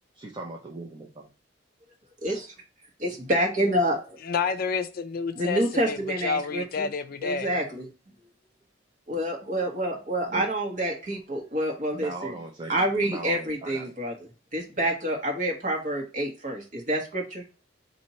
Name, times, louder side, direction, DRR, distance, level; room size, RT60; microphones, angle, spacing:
voice 1, 0.1-1.3 10.3-10.4 11.9-13.9, right 2 dB, 25° right, 0.6 m, -39 dB
voice 2, 2.2-2.5 3.0-4.2 5.3-6.9 7.2-7.9 9.1-12.4 12.7-14.1 14.5-17.4, right 1 dB, 45° right, 1.4 m, -27 dB
voice 3, 4.3-6.0 6.2-7.5, left 5 dB, 50° left, 0.4 m, -29 dB
4.3 x 2.8 x 4.1 m
head